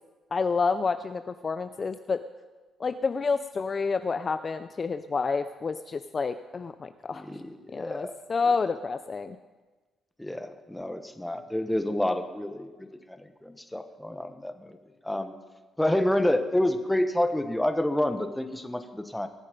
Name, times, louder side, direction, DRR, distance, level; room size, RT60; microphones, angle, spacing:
voice 1, 0.3-2.2 2.8-7.3 7.7-9.4, left 4 dB, 35° left, 11 dB, 0.5 m, -29 dB
voice 2, 7.1-8.1 10.2-14.7 15.0-15.3 15.8-19.3, left 1 dB, 5° left, 8 dB, 1.3 m, -28 dB
21.5 x 8.2 x 5.3 m, 1.3 s
cardioid pair, 90°, 0 cm